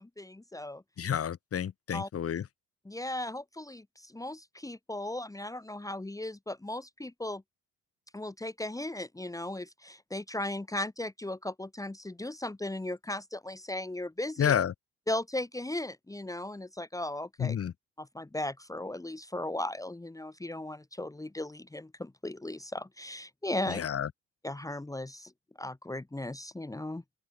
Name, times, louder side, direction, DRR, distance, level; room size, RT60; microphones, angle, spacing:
voice 1, 0.0-0.8 1.9-2.1 2.9-7.4 8.1-14.5 15.1-17.6 18.0-23.8 24.4-25.3 25.6-27.0, left 1 dB, 10° left, 1.8 m, -37 dB
voice 2, 1.0-2.4 14.4-14.7 17.4-17.7 23.7-24.1, left 8 dB, 50° left, 1.7 m, -30 dB
open air
cardioid pair, 90°, 30 cm